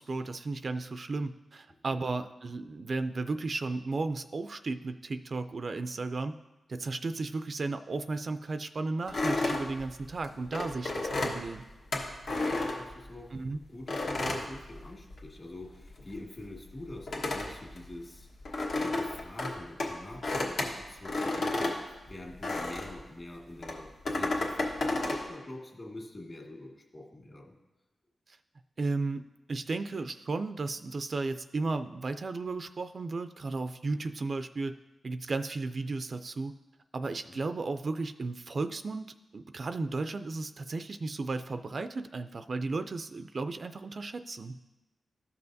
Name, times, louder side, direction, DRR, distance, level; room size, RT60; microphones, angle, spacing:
voice 1, 0.0-6.3 6.7-11.6 13.3-13.6 28.3-28.4 28.8-29.2 29.5-34.7 35.0-36.5 36.9-44.6, right 3 dB, 50° right, 9 dB, 0.3 m, -34 dB
voice 2, 1.7-2.0 12.3-13.4 13.7-18.3 18.7-27.6 37.2-37.4, left 1 dB, 35° left, 0 dB, 1.8 m, -45 dB
sound 1, 9.1-13.4 13.9-15.4 15.6-23.0 23.6-25.3, left 2 dB, 75° left, 1.2 m, -32 dB
13.5 x 5.6 x 2.6 m, 1.0 s
cardioid pair, 75°, 0 cm